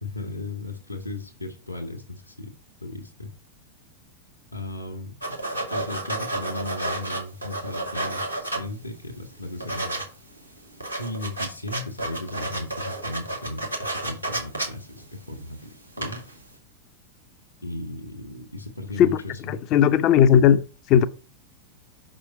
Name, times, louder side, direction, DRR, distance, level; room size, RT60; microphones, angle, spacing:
voice 1, 0.0-2.5 2.8-3.3 4.5-5.1 5.7-10.0 11.0-16.2 17.6-19.6, left 2 dB, 80° left, 1.2 m, -36 dB
sound 1, 5.2-9.0 9.3-10.0 10.4-10.5 10.7-15.6 15.9-16.4, right 2 dB, 90° right, 1.9 m, -31 dB
voice 2, 19.5-21.1, left 9 dB, 40° left, 0.6 m, -17 dB
5.6 x 5.1 x 4.6 m
figure-of-eight pair, 90°, 0 cm